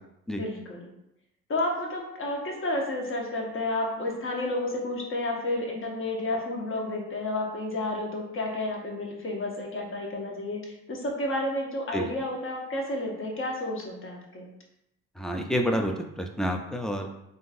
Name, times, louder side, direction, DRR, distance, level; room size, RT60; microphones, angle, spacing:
voice 1, 0.3-0.9 1.5-14.5, left 2 dB, 45° left, 0 dB, 0.9 m, -31 dB
voice 2, 15.2-17.1, equal, ahead, 3 dB, 0.3 m, -28 dB
3.6 x 2.5 x 2.6 m, 0.84 s
cardioid pair, 90°, 30 cm